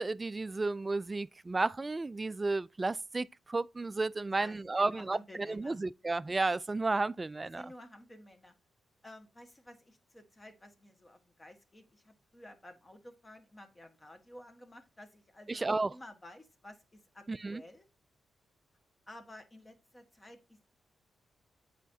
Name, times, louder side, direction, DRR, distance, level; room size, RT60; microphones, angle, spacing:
voice 1, 0.0-7.6 15.5-15.9 17.3-17.6, right 3 dB, 30° right, 0.3 m, -33 dB
voice 2, 4.3-5.8 7.5-8.5 9.0-17.9 19.1-20.8, left 1 dB, 25° left, 1.5 m, -53 dB
8.2 x 5.0 x 2.8 m
supercardioid pair, 45°, 0 cm